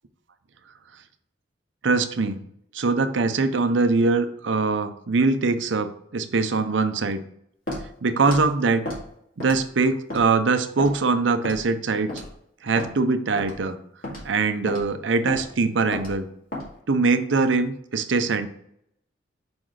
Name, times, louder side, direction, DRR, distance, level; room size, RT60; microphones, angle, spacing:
voice 1, 1.8-2.4 2.7-7.2 8.0-8.9 9.4-12.1 12.6-13.8 14.2-16.3 16.9-18.5, right 4 dB, 70° right, 9 dB, 0.6 m, -22 dB
Walk footsteps, 7.7-7.9 8.3-8.4 8.9-9.0 9.4-9.7 10.1-10.2 10.8-10.9 11.4-11.7 12.1-12.3 12.8-12.9 13.4-13.6 14.0-14.3 14.7-14.8 15.3-15.5 15.9-16.1 16.5-16.7, left 1 dB, 50° left, 2.0 m, -32 dB
5.2 x 3.9 x 4.7 m, 0.72 s
head